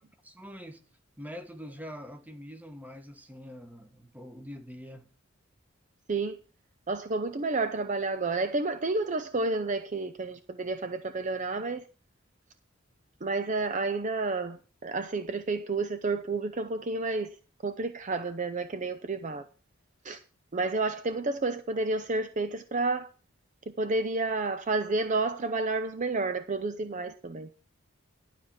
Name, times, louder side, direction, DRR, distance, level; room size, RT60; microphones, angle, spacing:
voice 1, 0.2-0.8 1.2-5.1, equal, 10° right, 1.2 m, -44 dB
voice 2, 6.9-11.8 13.2-17.3 17.6-19.4 20.0-20.2 20.5-23.1 23.8-27.5, right 3 dB, 40° right, 0.6 m, -30 dB
12.0 x 5.0 x 7.2 m
head